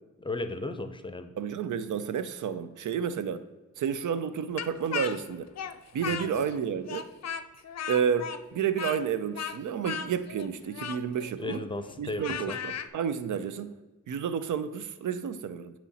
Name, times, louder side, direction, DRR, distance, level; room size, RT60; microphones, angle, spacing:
voice 1, 0.2-1.3 6.1-6.3 11.4-12.6, left 2 dB, 15° left, 0.7 m, -35 dB
voice 2, 1.4-3.4 3.8-5.5 5.9-7.1 7.9-11.6 12.0-13.7 14.1-15.7, right 7 dB, 75° right, 0.5 m, -31 dB
Speech, 4.6-6.6 6.9-12.9, left 8 dB, 55° left, 0.5 m, -36 dB
8.6 x 3.1 x 4.2 m
cardioid pair, 50°, 31 cm